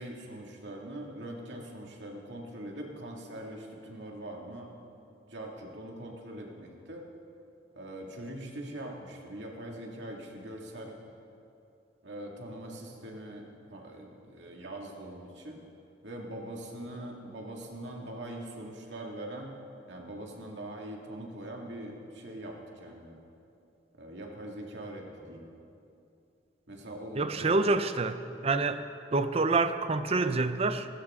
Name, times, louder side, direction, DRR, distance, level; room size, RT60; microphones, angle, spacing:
voice 1, 0.0-4.7 5.3-7.1 7.7-11.0 12.0-15.6 16.0-19.6 19.9-23.2 23.9-25.5 26.7-27.6, right 1 dB, 70° right, 0 dB, 2.2 m, -42 dB
voice 2, 27.2-28.8 29.1-30.9, right 3 dB, 35° right, 11 dB, 0.6 m, -27 dB
19.5 x 15.5 x 3.7 m, 2.6 s
head